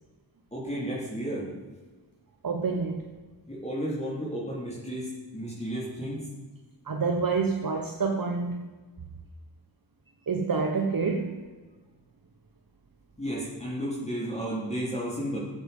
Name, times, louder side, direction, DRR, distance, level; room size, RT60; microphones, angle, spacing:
voice 1, 0.5-1.5 3.5-6.2 13.2-15.4, equal, 15° left, -6 dB, 4.0 m, -33 dB
voice 2, 2.4-3.0 6.8-8.7 10.3-11.3, right 4 dB, 45° right, 3 dB, 1.4 m, -27 dB
15.5 x 8.1 x 5.5 m, 1.3 s
cardioid pair, 60°, 46 cm